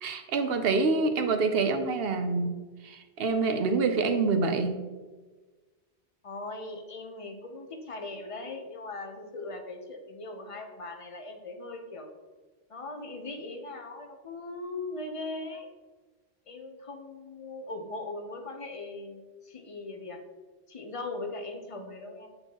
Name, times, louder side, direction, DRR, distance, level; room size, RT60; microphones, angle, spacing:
voice 1, 0.0-2.5 2.8-4.7, right 4 dB, 65° right, 7 dB, 0.8 m, -26 dB
voice 2, 6.2-12.1 12.7-15.7 16.5-20.2 20.7-22.3, left 2 dB, 35° left, 4 dB, 0.6 m, -39 dB
7.8 x 4.4 x 2.9 m, 1.3 s
omnidirectional pair, 1.1 m